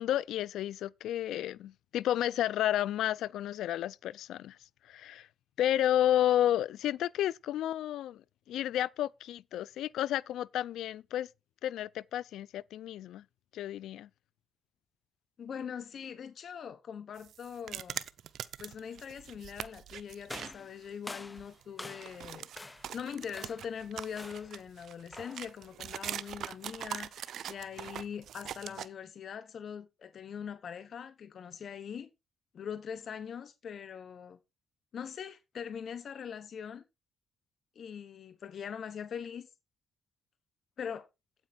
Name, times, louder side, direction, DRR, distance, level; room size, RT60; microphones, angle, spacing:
voice 1, 0.0-4.6 4.8-5.3 5.6-11.3 11.6-13.2 13.5-14.1, left 12 dB, 85° left, 0.4 m, -31 dB
voice 2, 15.4-18.0 18.6-22.5 22.9-32.1 32.5-34.4 34.9-36.8 37.7-39.5 40.8-41.1, left 7 dB, 60° left, 1.1 m, -42 dB
sound 1, 17.2-20.5 20.9-21.0 21.4-28.9, right 10 dB, 70° right, 0.6 m, -42 dB
sound 2, 20.3-22.3 22.6-23.0 23.3-23.7 24.2-24.6 25.1-25.5, left 2 dB, 20° left, 0.6 m, -46 dB
9.0 x 8.4 x 4.5 m
cardioid pair, 85°, 0 cm